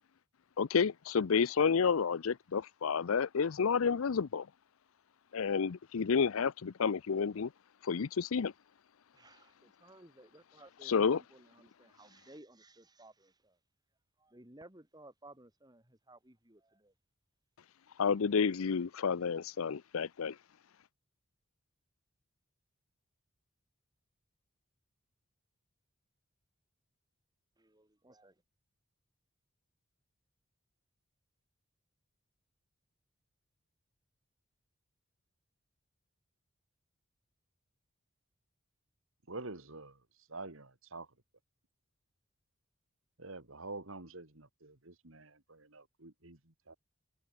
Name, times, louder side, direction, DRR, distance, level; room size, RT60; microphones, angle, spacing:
voice 1, 0.6-4.5 5.3-7.5 7.8-8.5 10.9-11.2 18.0-20.3, left 6 dB, 75° left, 0.5 m, -30 dB
voice 2, 9.1-13.6 14.2-16.9 27.6-28.3, right 1 dB, 20° right, 3.1 m, -58 dB
voice 3, 39.3-41.1 43.2-46.7, right 3 dB, 70° right, 2.6 m, -47 dB
head